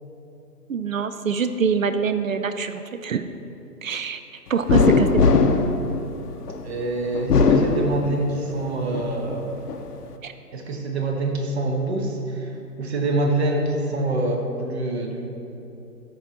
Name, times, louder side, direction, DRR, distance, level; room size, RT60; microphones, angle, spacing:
voice 1, 0.7-3.3 3.8-4.2 4.5-5.3 10.2-10.3, right 6 dB, 60° right, 10 dB, 0.5 m, -25 dB
sound 1, 4.7-6.6 7.1-8.5 8.9-9.8, left 4 dB, 70° left, 0.8 m, -19 dB
voice 2, 6.6-9.5 10.5-12.5 12.8-15.2, right 2 dB, 40° right, 3 dB, 1.2 m, -25 dB
13.0 x 4.5 x 4.1 m, 2.9 s
figure-of-eight pair, 140°, 48 cm